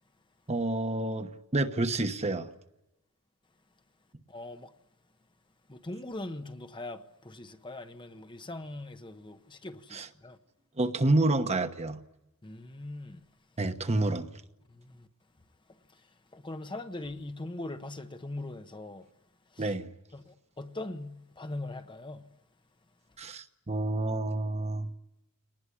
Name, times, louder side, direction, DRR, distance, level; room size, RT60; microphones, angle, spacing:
voice 1, 0.5-2.5 9.9-10.1 10.8-12.0 13.6-14.3 19.6-19.9 23.2-24.9, right 2 dB, 30° right, 1.1 m, -29 dB
voice 2, 4.3-4.7 5.7-10.4 12.4-13.2 14.7-15.1 15.9-19.1 19.5-19.7 20.1-22.3, left 2 dB, 20° left, 0.9 m, -41 dB
23.0 x 19.5 x 10.0 m
head